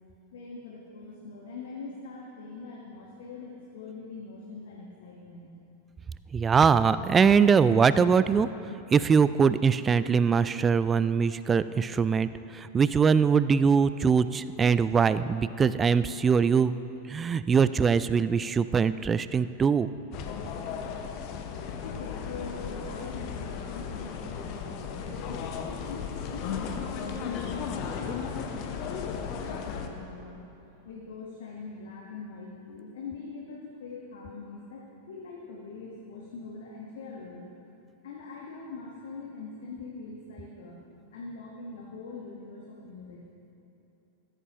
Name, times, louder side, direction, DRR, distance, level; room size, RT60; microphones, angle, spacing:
voice 1, 0.3-5.5 21.8-30.5 30.8-37.5 38.0-43.2, left 4 dB, 60° left, -2 dB, 1.4 m, -43 dB
voice 2, 6.3-8.5 8.9-16.7 17.1-19.9, right 6 dB, 20° right, 15 dB, 0.3 m, -22 dB
sound 1, 20.1-29.9, left 6 dB, 40° left, 0.9 m, -35 dB
15.0 x 14.0 x 3.0 m, 2.9 s
figure-of-eight pair, 90°, 0 cm